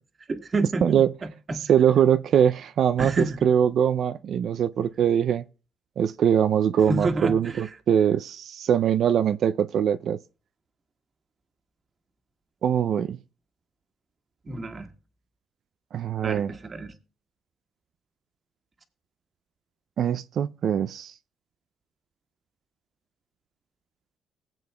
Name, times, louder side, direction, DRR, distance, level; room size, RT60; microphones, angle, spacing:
voice 1, 0.3-1.0 1.5-1.6 3.0-3.4 6.9-7.4 14.4-14.9 16.2-16.9, right 3 dB, 35° right, 1.5 m, -28 dB
voice 2, 0.8-1.1 1.7-5.5 6.0-10.2 12.6-13.2 15.9-16.5 20.0-21.1, right 9 dB, 65° right, 0.4 m, -22 dB
19.5 x 7.9 x 2.2 m
cardioid pair, 90°, 0 cm